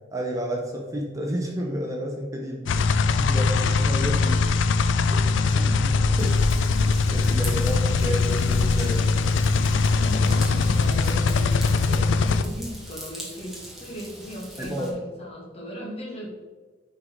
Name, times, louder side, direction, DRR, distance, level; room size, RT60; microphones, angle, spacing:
voice 1, 0.1-2.9 3.2-4.4 5.1-6.4 7.1-9.2 14.6-15.0, equal, 15° right, -1 dB, 0.7 m, -31 dB
sound 1, 2.7-12.4, left 4 dB, 75° left, 0.4 m, -21 dB
Raindrop / Vehicle horn car horn honking / Trickle dribble, 6.1-14.9, equal, ahead, 1.4 m, -39 dB
voice 2, 9.9-16.3, equal, 30° left, -2 dB, 1.5 m, -37 dB
9.4 x 3.9 x 3.1 m, 1.4 s
head